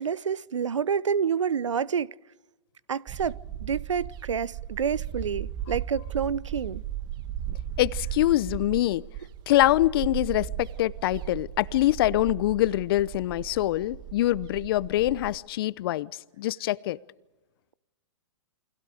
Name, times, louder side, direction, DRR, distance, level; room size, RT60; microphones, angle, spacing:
voice 1, 0.0-2.1 2.9-6.8, right 7 dB, 80° right, 0.7 m, -28 dB
sound 1, 3.1-15.4, right 11 dB, 30° right, 1.3 m, -36 dB
voice 2, 7.8-9.0 9.5-16.1 16.4-17.0, left 15 dB, 50° left, 0.8 m, -24 dB
29.5 x 24.5 x 5.0 m
hypercardioid pair, 120°, 16 cm